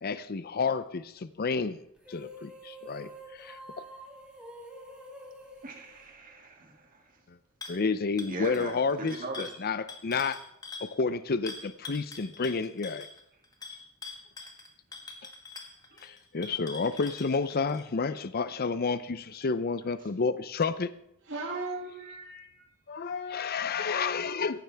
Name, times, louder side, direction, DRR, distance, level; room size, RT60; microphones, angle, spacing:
voice 1, 0.0-1.8 2.1-3.6 7.7-10.4 10.8-13.1 16.0-20.9 22.9-24.6, left 4 dB, 45° left, 13 dB, 0.6 m, -30 dB
sound 1, 2.0-6.7, right 1 dB, 5° right, 3.0 m, -48 dB
voice 2, 5.6-7.0 8.3-9.4, right 2 dB, 40° right, 2 dB, 2.1 m, -40 dB
sound 2, 7.6-7.8 8.2-10.9 11.5-17.8, left 3 dB, 15° left, 1.9 m, -44 dB
voice 3, 21.3-22.6 23.0-23.7, right 3 dB, 55° right, -3 dB, 2.6 m, -39 dB
18.0 x 15.0 x 3.5 m, 0.78 s
head